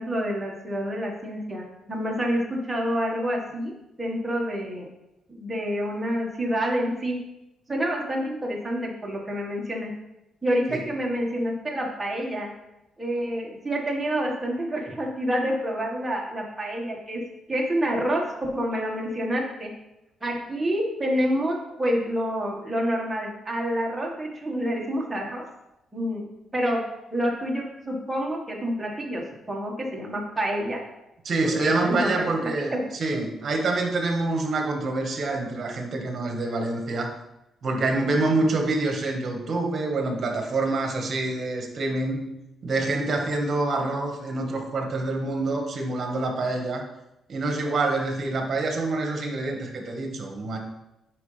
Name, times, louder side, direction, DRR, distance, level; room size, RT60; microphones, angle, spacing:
voice 1, 0.0-3.7 4.0-4.9 5.3-7.2 7.7-9.9 10.4-12.5 13.0-17.2 17.5-19.7 20.2-25.4 25.9-26.2 26.5-26.8 27.1-29.2 29.5-30.8 31.6-32.8, equal, 15° right, -2 dB, 1.7 m, -28 dB
voice 2, 31.3-37.1 37.6-42.3 42.6-46.9 47.3-50.6, right 2 dB, 50° right, 2 dB, 1.6 m, -26 dB
9.6 x 5.0 x 3.4 m, 0.92 s
cardioid pair, 115°, 0 cm